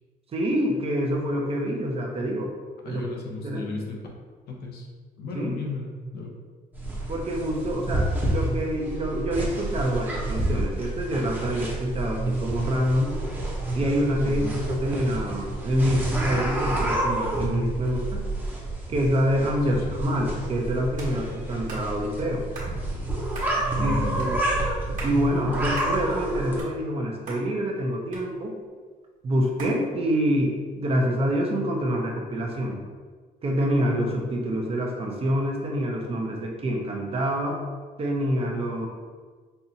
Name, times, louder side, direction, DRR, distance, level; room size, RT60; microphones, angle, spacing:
voice 1, 0.3-2.5 2.8-3.1 3.4-3.6 5.3-5.6 7.1-13.1 13.7-18.2 18.9-22.4 23.8-24.4 25.0-28.6 29.2-32.8 33.4-37.6 38.0-38.9, equal, 40° right, 0 dB, 0.8 m, -26 dB
voice 2, 2.8-4.0 4.5-4.9 5.2-6.4 7.9-8.1 14.2-14.6 19.7-19.9 23.7-24.3, left 3 dB, 85° left, 0 dB, 0.9 m, -35 dB
sound 1, 6.7-26.6, right 1 dB, 10° right, 0.9 m, -29 dB
sound 2, 21.0-21.1 21.7-21.9 22.5-22.7 23.3-23.5 24.2-24.3 24.8-25.2 25.8-26.0 26.4-27.0 27.3-27.4 28.1-28.7 29.6-29.8, right 2 dB, 55° right, 1.4 m, -38 dB
5.6 x 2.6 x 2.8 m, 1.5 s
cardioid pair, 110°, 16 cm